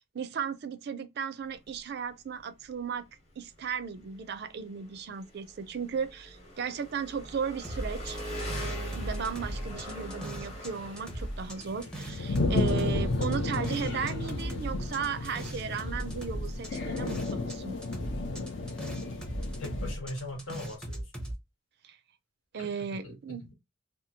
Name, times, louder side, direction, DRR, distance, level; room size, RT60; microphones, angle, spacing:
voice 1, 0.1-3.0 3.4-8.2 8.9-17.8 21.8-22.0 22.5-23.5, right 6 dB, 50° right, 0.4 m, -35 dB
Engine, 1.4-21.0, equal, 30° left, 0.9 m, -44 dB
sound 1, 7.6-10.7 11.0-17.6 17.8-21.3, right 1 dB, 5° left, 0.6 m, -38 dB
sound 2, 7.9-20.0, left 2 dB, 60° left, 0.6 m, -33 dB
voice 2, 19.6-21.0 22.6-22.7 23.0-23.5, left 2 dB, 80° left, 1.2 m, -40 dB
2.9 x 2.3 x 2.7 m
head